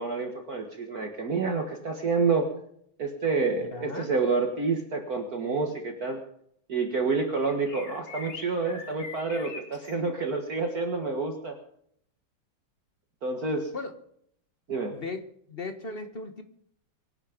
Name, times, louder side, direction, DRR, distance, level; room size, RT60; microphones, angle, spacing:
voice 1, 0.0-2.5 3.0-6.2 6.7-11.6 13.2-13.7 14.7-14.9, right 4 dB, 50° right, 3 dB, 2.0 m, -28 dB
voice 2, 3.6-4.1 13.7-13.9 14.9-15.2 15.5-16.4, left 3 dB, 30° left, 9 dB, 1.5 m, -37 dB
sound 1, 7.4-9.9, left 4 dB, 75° left, 2.7 m, -43 dB
24.0 x 9.8 x 5.2 m, 0.70 s
omnidirectional pair, 2.2 m